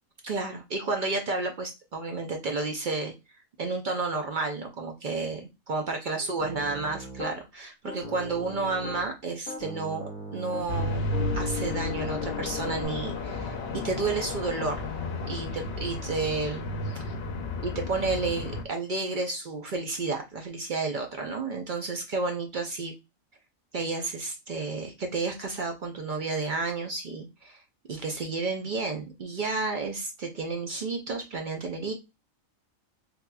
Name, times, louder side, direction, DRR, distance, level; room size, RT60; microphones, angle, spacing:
voice 1, 0.2-3.1 3.6-11.1 11.3-13.6 13.8-14.8 15.3-16.6 17.0-17.1 17.6-22.9 23.7-27.6 27.9-31.9, right 3 dB, 60° right, 3 dB, 0.5 m, -31 dB
Piano, 6.4-7.4 7.8-9.1 9.5-12.9, left 3 dB, 35° left, 0.9 m, -38 dB
sound 1, 10.7-18.6, left 2 dB, 60° left, 0.7 m, -33 dB
3.7 x 2.8 x 2.2 m, 0.24 s
omnidirectional pair, 1.4 m